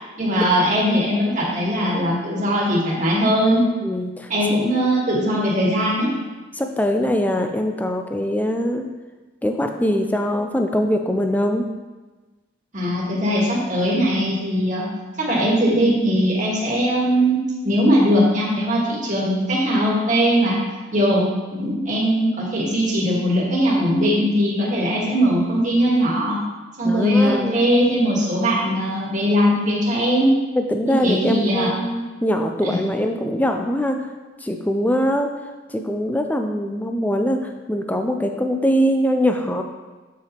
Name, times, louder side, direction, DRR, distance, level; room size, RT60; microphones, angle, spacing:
voice 1, 0.2-3.6 4.3-6.1 12.7-14.8 15.2-17.4 17.6-20.6 20.9-21.2 21.5-26.4 26.8-30.3 30.9-31.7 32.6-32.8, equal, 40° right, -4 dB, 1.6 m, -20 dB
voice 2, 3.8-4.3 6.6-8.9 9.4-11.7 26.8-27.6 30.6-34.0 34.4-35.3 35.7-39.6, equal, 10° left, 5 dB, 0.4 m, -22 dB
7.0 x 6.8 x 3.0 m, 1.2 s
head